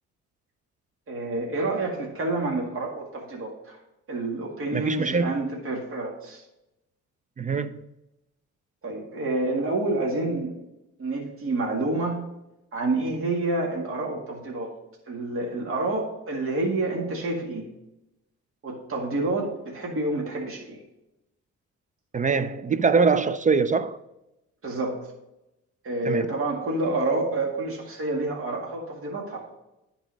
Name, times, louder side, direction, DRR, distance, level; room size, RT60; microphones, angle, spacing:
voice 1, 1.1-3.8 4.1-6.4 8.8-10.5 11.0-12.2 12.7-14.8 15.1-17.6 18.6-20.8 24.6-25.1 25.8-29.6, right 2 dB, 45° right, 1.9 m, -28 dB
voice 2, 4.7-5.3 7.4-7.9 22.1-24.0 26.0-26.2, right 5 dB, 25° right, 0.4 m, -23 dB
10.0 x 4.1 x 5.2 m
cardioid pair, 90°, 30 cm